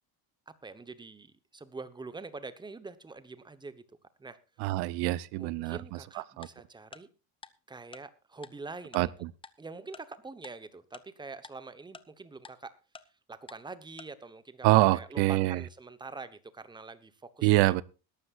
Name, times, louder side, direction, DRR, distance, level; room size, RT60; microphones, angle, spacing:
voice 1, 0.5-3.8 4.2-4.4 5.4-7.1 7.7-9.1 9.6-12.8 13.3-14.7 14.9-17.7, right 3 dB, 10° right, 1.1 m, -45 dB
voice 2, 4.6-5.8 6.4-6.5 8.9-9.1 14.6-15.6 17.4-17.8, right 18 dB, 80° right, 0.8 m, -24 dB
Tick-tock, 6.4-6.5 6.9-7.0 7.4-7.5 7.9-8.0 8.4-8.5 8.9-9.0 9.4-9.5 9.9-10.0 10.4-10.5 10.9-11.0 11.4-11.5 11.9-12.0 12.4-12.5 12.9-13.0 13.5-13.6 14.0-14.1, left 4 dB, 15° left, 0.7 m, -47 dB
21.0 x 12.0 x 2.5 m
cardioid pair, 145°, 40 cm